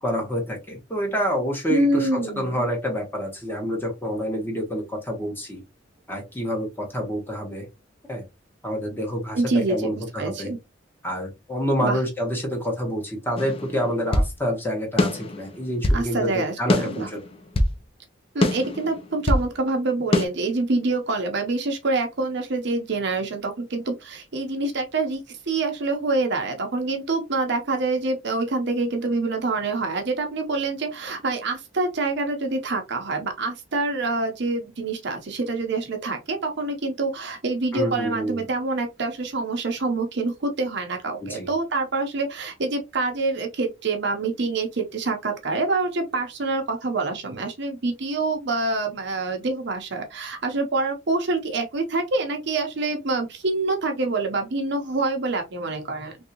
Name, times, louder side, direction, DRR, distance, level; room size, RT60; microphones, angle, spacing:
voice 1, 0.0-5.6 6.1-7.7 8.1-8.2 8.6-9.4 9.7-10.5 11.0-17.2 37.7-38.4 41.2-41.5, equal, 10° left, 1.1 m, -27 dB
voice 2, 1.7-2.6 9.3-9.9 10.2-10.6 11.8-12.0 15.9-17.1 18.3-56.2, right 3 dB, 60° right, 0.7 m, -26 dB
sound 1, 13.4-14.3 15.0-16.1 16.7-17.8 18.4-19.5 20.1-20.3, left 1 dB, 30° left, 0.5 m, -23 dB
3.3 x 2.7 x 2.8 m
head